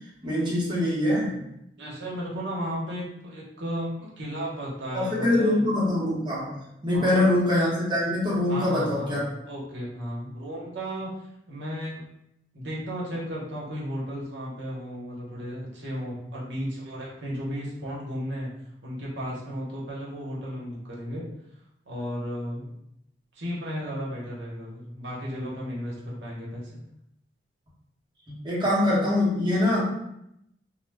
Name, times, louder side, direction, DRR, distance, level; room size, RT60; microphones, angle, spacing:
voice 1, 0.2-1.4 4.9-9.2 28.3-29.8, left 1 dB, 25° right, -7 dB, 0.9 m, -24 dB
voice 2, 1.8-5.7 6.9-7.2 8.5-12.0 12.5-18.5 18.8-21.2 21.8-22.7 23.3-26.8, equal, 80° right, -5 dB, 0.8 m, -34 dB
2.1 x 2.0 x 3.3 m, 0.79 s
head